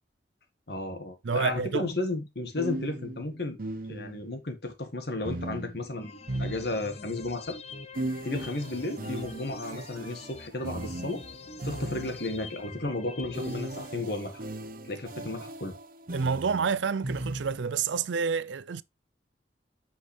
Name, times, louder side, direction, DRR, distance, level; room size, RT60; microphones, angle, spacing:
voice 1, 0.7-3.6 3.9-7.6 8.2-11.2 11.7-14.4 14.9-15.7, left 2 dB, 60° left, 1.8 m, -33 dB
voice 2, 1.2-1.9 16.1-18.8, right 5 dB, 85° right, 0.5 m, -28 dB
sound 1, 1.5-1.7 2.6-4.4 5.2-7.2 7.9-12.5 13.3-17.8, right 2 dB, 50° right, 0.9 m, -38 dB
sound 2, 6.0-14.0, left 3 dB, 35° left, 0.7 m, -45 dB
8.2 x 5.8 x 3.3 m
head